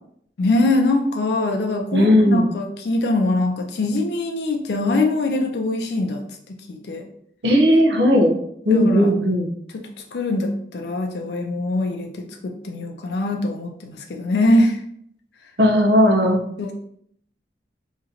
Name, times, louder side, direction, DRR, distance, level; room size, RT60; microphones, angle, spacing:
voice 1, 0.4-7.1 8.7-9.1 9.7-9.8 10.1-14.8 16.6-16.7, left 2 dB, 75° left, 2 dB, 0.4 m, -23 dB
voice 2, 1.9-2.5 7.4-8.4 8.6-9.5 15.6-16.4, equal, 85° right, 2 dB, 0.8 m, -16 dB
3.8 x 2.9 x 2.8 m, 0.68 s
head